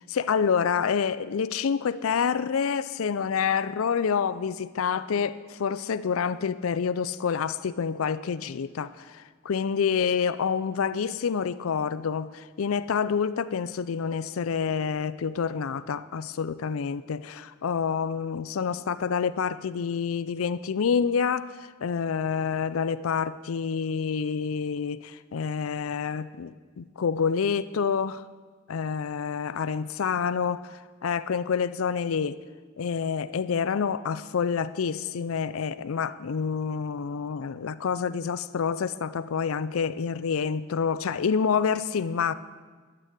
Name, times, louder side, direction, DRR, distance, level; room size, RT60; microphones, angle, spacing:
voice 1, 0.1-28.3 28.7-30.7 31.0-32.4 32.8-42.3, left 6 dB, 85° left, 15 dB, 0.5 m, -28 dB
12.5 x 9.3 x 8.2 m, 1.5 s
head